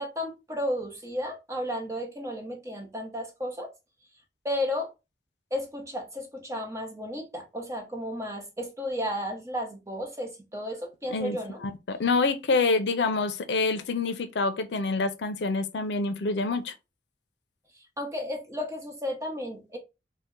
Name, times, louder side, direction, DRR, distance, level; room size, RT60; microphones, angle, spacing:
voice 1, 0.0-3.7 4.4-4.9 5.5-11.6 17.7-19.8, left 1 dB, 15° right, 0.8 m, -33 dB
voice 2, 11.6-16.7, left 3 dB, 80° left, 0.5 m, -26 dB
4.1 x 2.1 x 3.6 m
head